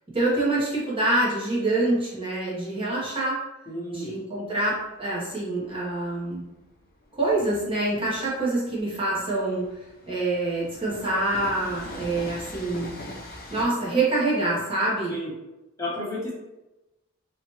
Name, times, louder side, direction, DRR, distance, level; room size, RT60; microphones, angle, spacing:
voice 1, 0.1-3.4 3.9-6.4 7.1-9.7 10.1-12.9 13.5-15.1, right 2 dB, 25° right, -7 dB, 0.9 m, -26 dB
voice 2, 3.7-4.1 15.1-15.3 15.8-16.3, left 1 dB, 15° left, -8 dB, 1.2 m, -31 dB
Train, 4.5-13.6, left 1 dB, 45° left, 0.5 m, -42 dB
2.9 x 2.4 x 2.9 m, 0.98 s
head